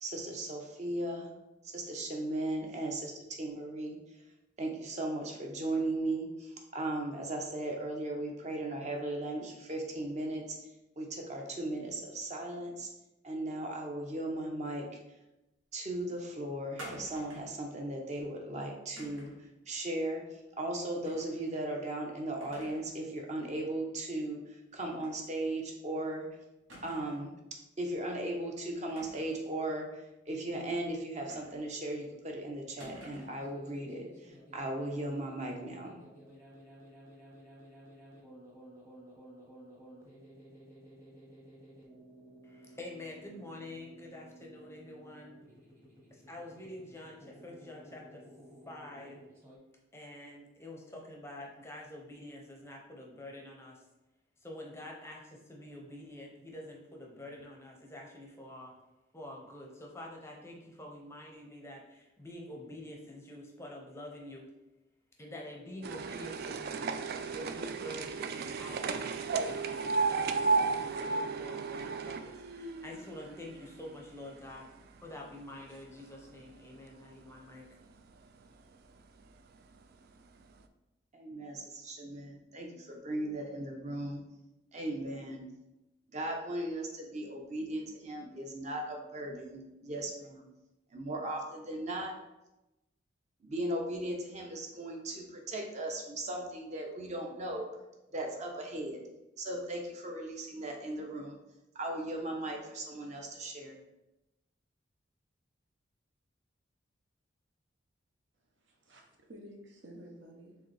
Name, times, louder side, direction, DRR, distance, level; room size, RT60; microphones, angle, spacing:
voice 1, 0.0-1.3 1.6-4.0 4.6-10.6 11.0-12.9 13.2-14.9 15.7-19.3 19.7-26.3 26.8-27.3 27.8-36.0 81.1-84.2 84.7-85.4 86.1-90.4 90.9-92.1 93.4-97.7 98.1-99.0 99.4-101.4 101.7-103.7, right 1 dB, 35° right, 2 dB, 0.7 m, -37 dB
sound 1, 16.8-17.6 19.0-19.4 21.1-21.4 21.8-21.9 22.4-22.9 23.3-23.4 25.0-25.2 25.5-25.6 26.7-27.3 28.9-29.4 31.3-31.9 32.8-33.4, right 1 dB, 90° right, 1.3 m, -50 dB
sound 2, 33.0-49.6, right 1 dB, 15° right, 1.0 m, -55 dB
voice 2, 42.4-45.3 46.1-48.2 48.7-49.2 49.9-53.8 54.4-58.7 59.1-64.5 65.2-66.9 67.3-74.7 75.0-77.8, left 1 dB, 15° left, 0 dB, 0.6 m, -47 dB
sound 3, 65.8-74.1 74.4-75.3 76.0-76.1 76.4-76.5 76.8-76.9 77.7-77.9 78.4-78.5 79.2-79.3 79.8-79.9, right 4 dB, 55° right, 0.3 m, -34 dB
voice 3, 108.5-110.6, equal, 70° right, 0 dB, 0.8 m, -52 dB
4.6 x 3.5 x 3.2 m, 0.97 s
head